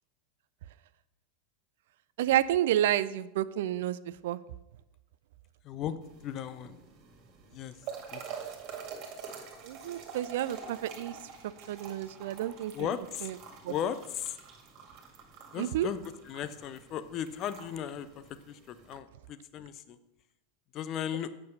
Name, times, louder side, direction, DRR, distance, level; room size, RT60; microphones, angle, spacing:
voice 1, 2.2-4.4 9.6-11.2 11.7-12.9 13.2-13.3 13.6-13.7 15.5-15.9, right 12 dB, 60° right, 16 dB, 0.3 m, -30 dB
voice 2, 5.6-5.9 6.2-6.8 7.5-7.8 8.1-8.2 12.7-13.3 13.7-14.4 15.5-18.1 18.5-20.0 20.7-21.3, left 9 dB, 40° left, 13 dB, 0.6 m, -36 dB
sound 1, 6.0-19.0, right 6 dB, 45° right, 1.9 m, -47 dB
8.5 x 6.1 x 5.4 m, 0.93 s
figure-of-eight pair, 85°, 0 cm